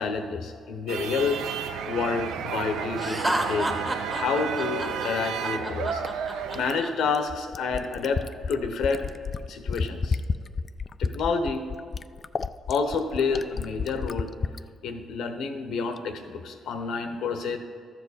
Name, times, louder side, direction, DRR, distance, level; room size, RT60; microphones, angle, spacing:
voice 1, 0.0-1.4 1.9-3.8 4.1-6.0 6.5-9.1 9.5-10.2 11.0-11.7 12.7-14.3 14.8-17.6, left 5 dB, 75° left, 7 dB, 1.0 m, -29 dB
sound 1, 0.9-6.8, right 7 dB, 90° right, 0.5 m, -32 dB
Laughter, 3.0-6.9, right 1 dB, 15° right, 1.2 m, -30 dB
Fill (with liquid), 6.5-14.6 16.0-16.1, left 5 dB, 40° left, 0.3 m, -31 dB
12.5 x 7.4 x 4.2 m, 2.2 s
cardioid pair, 90°, 0 cm